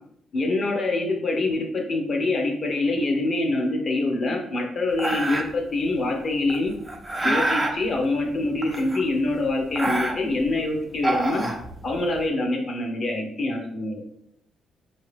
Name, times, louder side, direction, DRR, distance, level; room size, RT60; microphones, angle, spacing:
voice 1, 0.3-6.7 7.2-11.4 11.8-14.0, left 2 dB, 45° left, 2 dB, 1.0 m, -25 dB
sound 1, 5.0-5.7 6.5-7.8 8.6-9.3 9.6-10.5 10.9-12.1, right 2 dB, 15° right, 0.6 m, -26 dB
4.4 x 2.8 x 3.3 m, 0.74 s
cardioid pair, 90°, 0 cm